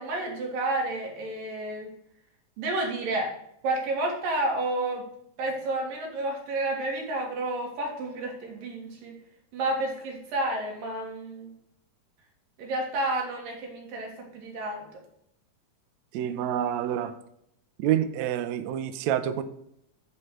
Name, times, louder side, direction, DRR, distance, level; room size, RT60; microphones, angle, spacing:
voice 1, 0.0-1.9 2.6-3.3 3.6-5.1 5.4-9.2 9.5-11.5 12.6-14.9, right 2 dB, 70° right, -1 dB, 3.9 m, -30 dB
voice 2, 16.1-17.1 17.8-19.4, right 10 dB, 90° right, 10 dB, 1.6 m, -27 dB
9.9 x 5.5 x 4.6 m, 0.76 s
omnidirectional pair, 4.2 m